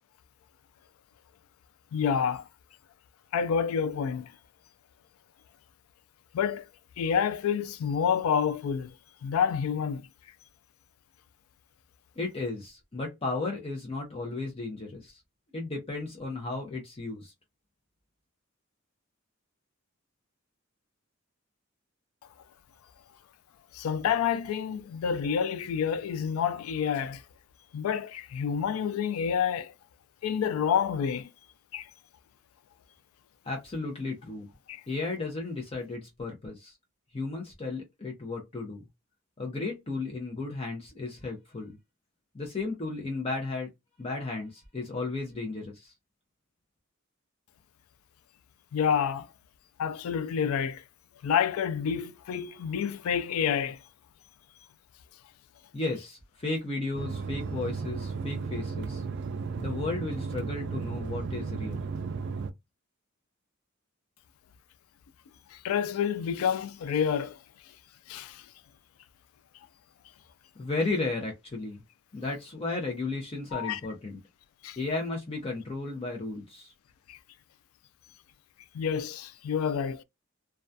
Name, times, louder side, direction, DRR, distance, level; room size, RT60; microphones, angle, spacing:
voice 1, 1.9-2.5 3.3-4.3 6.3-6.7 7.0-8.9 9.2-10.1 23.7-27.2 27.7-29.7 30.2-31.3 31.7-31.9 34.7-34.8 48.7-49.3 49.8-50.8 51.2-53.8 65.5-67.4 68.1-68.5 73.5-73.8 74.6-74.8 77.1-77.2 78.7-80.0, left 7 dB, 90° left, 0.3 m, -28 dB
voice 2, 12.2-15.2 15.5-17.3 33.4-34.5 34.9-36.8 37.1-38.9 39.4-41.8 42.3-43.7 44.0-45.9 55.7-59.0 59.6-61.8 70.6-71.8 72.1-74.2 74.8-76.7, left 3 dB, 30° left, 0.5 m, -34 dB
sound 1, 56.9-62.5, right 4 dB, 60° right, 0.3 m, -34 dB
2.3 x 2.2 x 2.5 m
head